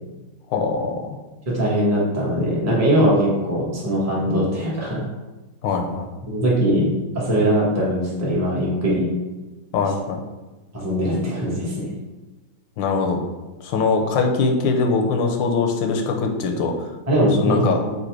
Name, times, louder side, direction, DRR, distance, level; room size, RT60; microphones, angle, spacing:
voice 1, 0.5-1.2 5.6-6.1 9.7-10.2 12.8-13.2 13.6-16.9 17.3-17.8, left 4 dB, 85° left, 3 dB, 1.3 m, -22 dB
voice 2, 1.5-5.1 6.3-9.1 10.7-11.9 17.1-17.9, equal, 15° right, -5 dB, 0.7 m, -21 dB
4.0 x 2.7 x 4.5 m, 1.2 s
omnidirectional pair, 2.0 m